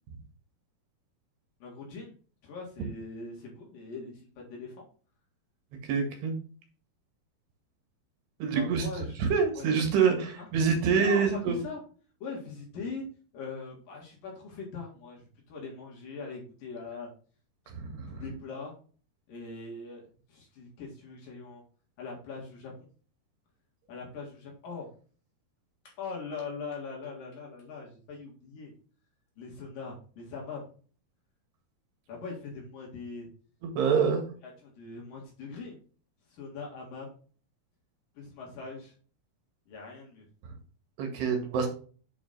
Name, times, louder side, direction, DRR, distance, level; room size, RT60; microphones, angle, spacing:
voice 1, 1.6-2.1 2.4-4.8 8.5-9.2 9.5-9.7 10.4-10.5 11.0-11.8 12.2-13.0 13.3-17.1 18.1-18.7 19.3-21.6 22.0-22.7 23.9-24.9 25.8-28.7 29.4-30.6 32.1-33.3 34.4-35.8 36.3-37.1 38.2-38.9 39.7-40.3, left 4 dB, 60° left, -2 dB, 3.4 m, -41 dB
voice 2, 5.9-6.3 8.4-8.9 9.2-11.6 18.0-18.2 33.6-34.2 41.0-41.7, right 6 dB, 90° right, 4 dB, 4.0 m, -26 dB
8.3 x 5.0 x 4.0 m, 0.41 s
omnidirectional pair, 4.6 m